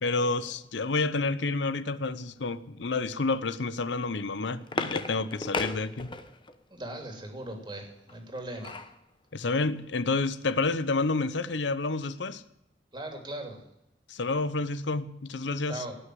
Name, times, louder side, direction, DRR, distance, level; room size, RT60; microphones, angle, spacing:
voice 1, 0.0-6.1 9.3-12.4 14.1-15.8, left 3 dB, 85° left, 14 dB, 0.8 m, -29 dB
sound 1, 4.1-6.6 8.1-9.0 9.5-9.6 9.8-10.1, left 3 dB, 25° left, 0.9 m, -35 dB
voice 2, 6.7-8.8 12.9-13.6 15.7-15.9, right 1 dB, 25° right, 3 dB, 2.8 m, -39 dB
18.0 x 6.4 x 9.3 m, 0.85 s
head